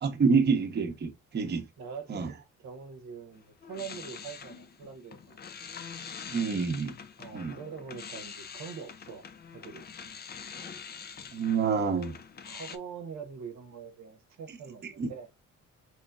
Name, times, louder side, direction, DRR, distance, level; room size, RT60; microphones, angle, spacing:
voice 1, 0.0-1.7 2.1-2.3 6.3-7.0 7.3-7.5 11.3-12.1 14.8-15.1, right 5 dB, 35° right, 0.8 m, -27 dB
voice 2, 1.4-5.5 7.2-9.3 9.5-9.9 12.4-15.3, right 6 dB, 65° right, 0.8 m, -44 dB
sound 1, 3.4-12.8, left 6 dB, 35° left, 0.5 m, -45 dB
4.3 x 3.1 x 2.4 m
cardioid pair, 90°, 30 cm